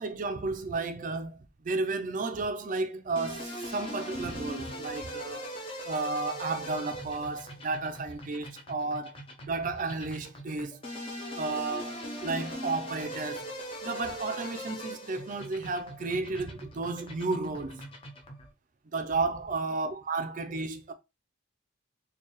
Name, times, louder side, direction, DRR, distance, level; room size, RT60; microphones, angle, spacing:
voice 1, 0.0-5.5 5.8-9.2 9.4-10.8 11.3-13.5 13.8-17.8 18.9-20.9, right 3 dB, 40° right, 0.4 m, -33 dB
sound 1, 3.2-18.5, equal, 30° left, 0.6 m, -41 dB
4.4 x 2.3 x 3.0 m
head